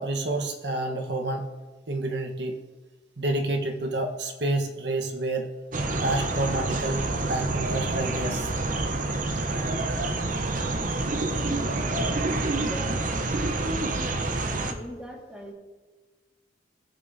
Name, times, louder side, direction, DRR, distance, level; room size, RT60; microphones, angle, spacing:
voice 1, 0.0-1.5 1.9-2.6 3.2-5.5 6.0-8.5, right 2 dB, 70° right, 4 dB, 1.1 m, -29 dB
sound 1, 5.7-14.7, right 2 dB, 45° right, 0.7 m, -27 dB
voice 2, 12.4-13.0 13.9-14.1 14.5-15.5, equal, 5° right, -1 dB, 1.7 m, -41 dB
19.5 x 6.8 x 2.7 m, 1.3 s
head